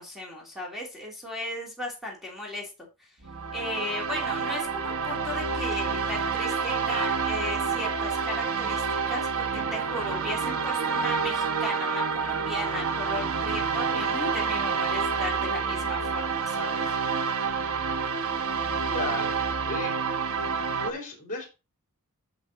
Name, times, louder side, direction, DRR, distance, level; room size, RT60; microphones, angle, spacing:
voice 1, 0.0-2.7 3.0-3.2 3.5-16.9, left 1 dB, ahead, -1 dB, 2.9 m, -36 dB
sound 1, 3.2-20.9, right 5 dB, 70° right, 1.1 m, -28 dB
voice 2, 18.9-19.9 20.3-21.5, left 2 dB, 40° left, 2 dB, 3.6 m, -35 dB
8.0 x 7.2 x 4.1 m, 0.28 s
head